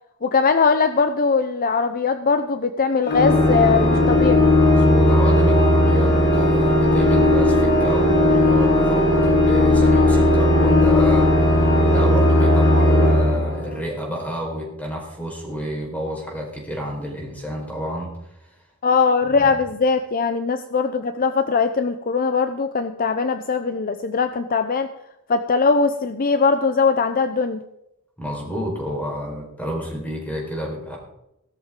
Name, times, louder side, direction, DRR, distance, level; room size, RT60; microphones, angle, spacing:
voice 1, 0.2-4.5 18.8-24.9 25.3-27.6, left 4 dB, 40° left, 9 dB, 0.6 m, -20 dB
Organ, 3.0-14.0, left 1 dB, 85° left, 4.7 m, -16 dB
voice 2, 4.5-11.3 11.9-18.1 18.4-18.5 19.3-19.5 28.2-31.0, equal, 5° left, -1 dB, 4.6 m, -30 dB
17.0 x 13.0 x 3.8 m, 0.85 s
head